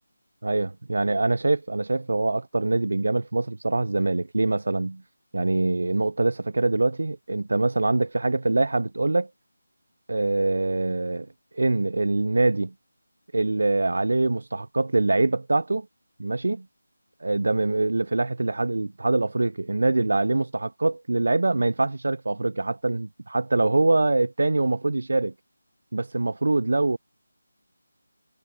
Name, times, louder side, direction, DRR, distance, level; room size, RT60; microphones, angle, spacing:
voice 1, 0.4-5.0 5.3-9.3 10.1-11.3 11.5-12.7 13.3-15.9 16.2-16.7 17.2-25.3 25.9-27.0, right 2 dB, 70° right, 0.4 m, -24 dB
figure-of-eight pair, 165°, 0 cm